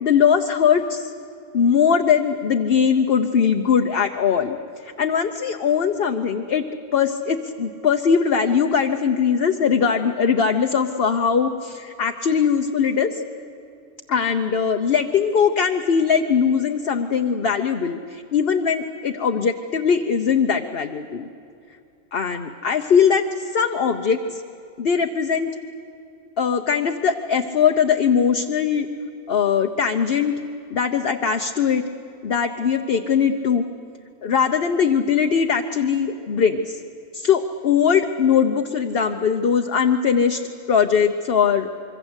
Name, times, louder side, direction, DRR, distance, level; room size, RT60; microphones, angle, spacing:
voice 1, 0.0-1.1 1.5-4.6 4.8-6.6 6.9-13.1 14.1-21.3 22.1-24.4 24.8-25.5 26.4-28.9 29.3-30.4 30.7-31.8 32.2-33.6 34.2-36.8 37.1-40.4 40.7-41.7, left 7 dB, 50° left, 4 dB, 1.0 m, -20 dB
26.0 x 23.5 x 8.1 m, 2.6 s
omnidirectional pair, 1.4 m